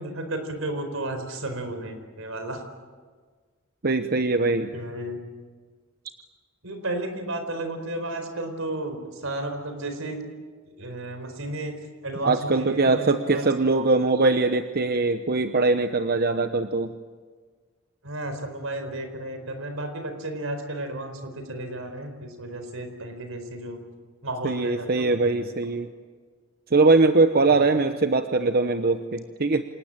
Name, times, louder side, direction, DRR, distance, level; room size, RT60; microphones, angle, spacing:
voice 1, 0.0-2.6 4.7-5.2 6.6-10.2 10.8-11.8 12.0-13.5 18.0-23.8 24.2-25.4 27.5-27.7, right 1 dB, 80° right, 7 dB, 4.4 m, -33 dB
voice 2, 3.8-4.7 12.2-16.9 24.4-25.9 26.7-29.6, right 3 dB, 50° right, 8 dB, 0.9 m, -22 dB
27.0 x 19.0 x 8.9 m, 1.5 s
head